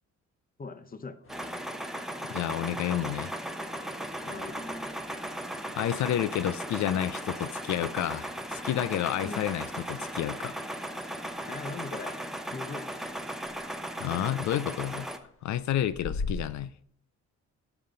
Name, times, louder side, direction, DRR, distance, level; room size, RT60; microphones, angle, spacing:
voice 1, 0.6-1.2 4.2-4.6 9.2-9.5 11.5-12.2 12.5-12.8, left 4 dB, 30° left, 0.9 m, -39 dB
sound 1, 1.2-16.3, left 4 dB, 45° left, 1.7 m, -46 dB
sound 2, 1.3-15.2, right 1 dB, ahead, 0.9 m, -37 dB
voice 2, 2.3-3.3 5.7-10.5 14.0-15.1 15.4-16.7, left 11 dB, 70° left, 0.5 m, -30 dB
11.0 x 7.0 x 3.9 m
cardioid pair, 90°, 30 cm